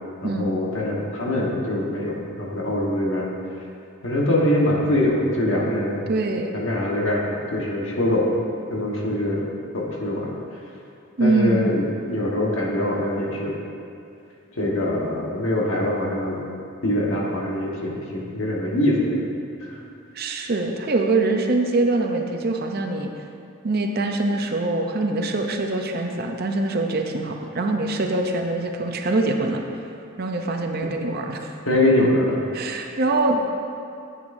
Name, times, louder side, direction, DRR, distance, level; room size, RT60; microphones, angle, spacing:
voice 1, 0.2-3.3 4.0-6.0 6.5-8.3 8.7-9.4 9.7-10.3 11.2-13.5 14.6-16.4 16.8-19.2 19.6-19.8 31.7-32.4, left 1 dB, 70° left, -3 dB, 1.3 m, -23 dB
voice 2, 6.1-6.6 11.2-11.8 20.1-23.1 23.6-29.6 30.2-31.5 32.5-33.5, right 2 dB, 45° right, 3 dB, 0.6 m, -23 dB
9.9 x 8.2 x 2.6 m, 2.5 s
head